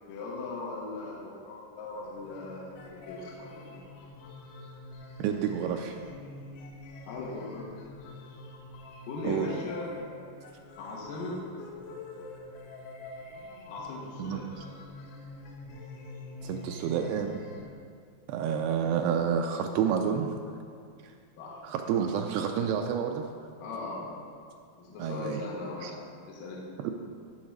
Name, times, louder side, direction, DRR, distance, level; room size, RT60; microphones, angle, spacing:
voice 1, 0.1-3.8 7.1-7.7 9.1-9.9 10.8-11.4 13.7-14.5 21.4-21.6 23.6-24.2 24.8-26.0 26.3-26.6, left 2 dB, 60° left, -4 dB, 2.6 m, -38 dB
sound 1, 1.9-17.7, left 2 dB, 90° left, 3.2 m, -46 dB
voice 2, 5.2-6.0 9.2-9.5 14.2-14.6 16.4-17.5 18.3-20.3 21.6-23.3 25.0-25.4 25.8-25.9 26.8-26.9, right 8 dB, 85° right, 4 dB, 2.3 m, -29 dB
11.5 x 4.0 x 6.4 m, 2.2 s
omnidirectional pair, 5.0 m